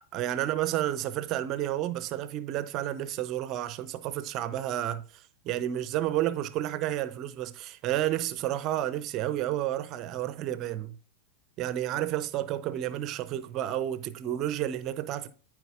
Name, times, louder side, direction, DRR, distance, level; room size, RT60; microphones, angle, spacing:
voice 1, 0.1-10.9 11.6-15.3, right 12 dB, 35° right, 0.6 m, -31 dB
13.0 x 4.6 x 2.5 m
figure-of-eight pair, 90°, 0 cm